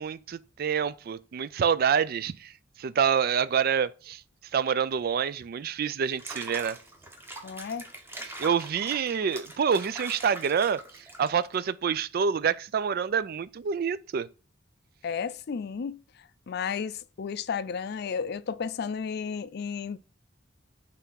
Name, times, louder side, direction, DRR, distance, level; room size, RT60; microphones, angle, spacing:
voice 1, 0.0-2.5 2.8-4.2 4.5-6.8 8.4-10.8 11.2-14.3, right 7 dB, 55° right, 0.4 m, -27 dB
Water / Bathtub (filling or washing), 6.1-11.5, right 1 dB, 15° right, 1.0 m, -43 dB
voice 2, 7.4-7.9 15.0-16.0 16.5-20.0, left 6 dB, 60° left, 0.4 m, -33 dB
5.9 x 3.4 x 5.6 m
head